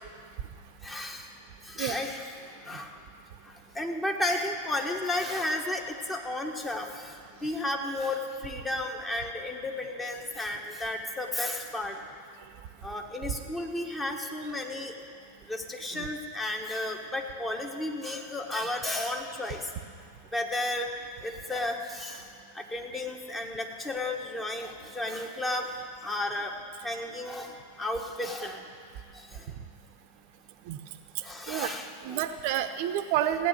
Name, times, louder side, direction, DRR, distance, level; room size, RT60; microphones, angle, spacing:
voice 1, 0.8-1.3 1.6-2.4 2.6-3.0 3.5-12.0 12.8-14.9 15.5-19.7 20.3-20.9 21.2-22.2 22.5-25.7 26.0-26.5 26.8-28.6 29.3-29.5 31.2-32.3, left 1 dB, 10° left, 2 dB, 1.4 m, -33 dB
voice 2, 32.0-33.5, right 11 dB, 45° right, 9 dB, 0.8 m, -29 dB
15.5 x 9.4 x 6.5 m, 2.2 s
figure-of-eight pair, 90°, 0 cm